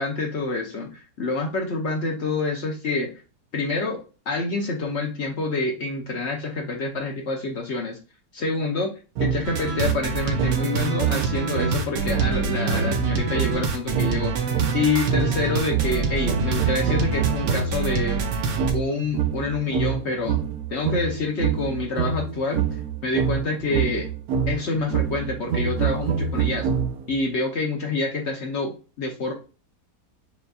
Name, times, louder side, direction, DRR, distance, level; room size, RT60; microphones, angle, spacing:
voice 1, 0.0-3.1 3.5-8.0 8.3-8.9 9.2-14.5 14.7-18.3 18.7-20.4 20.7-22.7 23.0-24.1 24.5-26.7 27.1-29.3, left 3 dB, 60° left, 2 dB, 0.7 m, -27 dB
sound 1, 9.2-17.9 18.6-27.2, right 7 dB, 70° right, 1.0 m, -26 dB
sound 2, 9.4-18.7, right 4 dB, 90° right, 1.4 m, -26 dB
6.8 x 2.6 x 2.3 m, 0.34 s
omnidirectional pair, 1.8 m